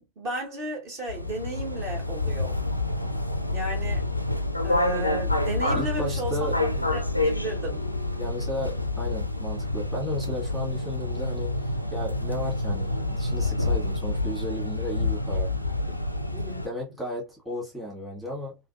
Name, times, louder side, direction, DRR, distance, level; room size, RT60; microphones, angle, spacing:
voice 1, 0.2-2.6 3.5-4.1 4.6-6.5 6.9-7.8 16.3-16.7, right 1 dB, 45° right, 1.6 m, -34 dB
sound 1, 1.1-16.7, left 2 dB, 90° left, 0.3 m, -28 dB
voice 2, 5.7-6.8 8.2-15.5 16.6-18.6, left 1 dB, 5° right, 1.3 m, -34 dB
3.3 x 2.4 x 2.6 m
figure-of-eight pair, 90°, 0 cm